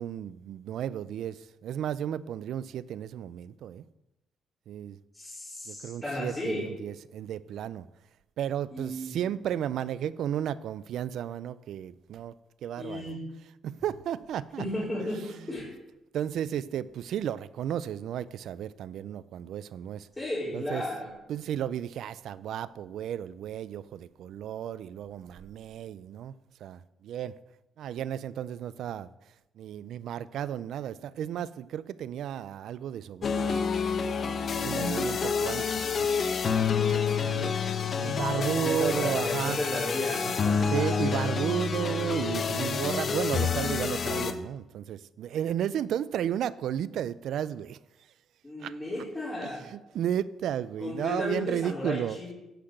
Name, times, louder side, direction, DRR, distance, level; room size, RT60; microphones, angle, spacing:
voice 1, 0.0-3.8 4.7-5.0 5.7-7.9 8.4-12.3 12.6-13.2 13.6-14.9 16.1-20.1 20.5-20.8 21.3-26.3 26.6-27.4 27.8-29.1 29.6-33.6 34.5-36.1 36.4-37.5 38.0-39.6 40.2-40.3 40.7-47.8 48.6-48.7 49.4-52.2, right 10 dB, 75° right, 0.4 m, -33 dB
voice 2, 5.1-6.7 8.7-9.2 12.8-13.2 14.6-15.7 20.2-21.1 34.6-35.1 38.4-41.0 42.6-42.7 48.4-49.7 50.8-52.3, left 1 dB, 15° left, 3.9 m, -34 dB
sound 1, 33.2-44.3, left 6 dB, 50° left, 0.9 m, -28 dB
10.0 x 5.9 x 7.9 m
cardioid pair, 90°, 0 cm